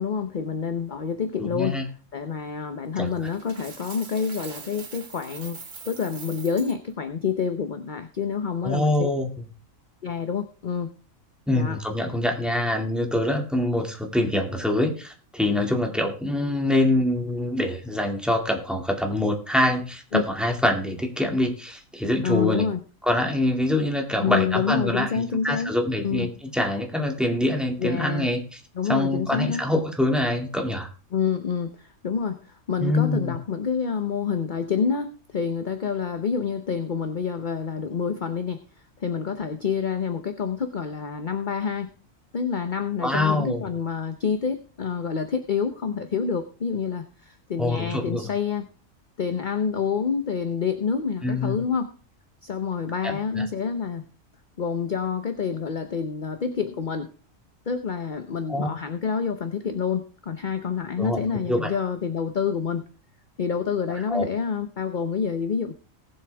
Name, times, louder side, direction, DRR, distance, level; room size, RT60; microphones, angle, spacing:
voice 1, 0.0-5.6 5.9-9.1 10.0-10.9 11.5-11.8 20.1-20.2 22.2-22.8 24.2-25.7 26.0-26.3 27.8-28.3 28.7-29.6 31.1-38.6 39.0-41.9 42.3-48.6 49.2-51.9 52.4-54.0 54.6-57.1 57.7-62.8 63.4-65.7, left 6 dB, 40° left, 8 dB, 0.9 m, -27 dB
voice 2, 1.4-1.9 3.0-3.1 8.6-9.3 11.5-22.6 23.1-28.6 28.9-30.9 32.8-33.4 43.0-43.6 47.6-48.3 51.2-51.6 53.0-53.5 58.5-58.7 61.0-61.2 61.5-61.7 64.1-64.3, left 1 dB, ahead, 1 dB, 2.2 m, -25 dB
Coin (dropping), 3.3-6.8, right 5 dB, 70° right, 2.0 m, -42 dB
19.0 x 7.8 x 3.5 m, 0.37 s
omnidirectional pair, 1.4 m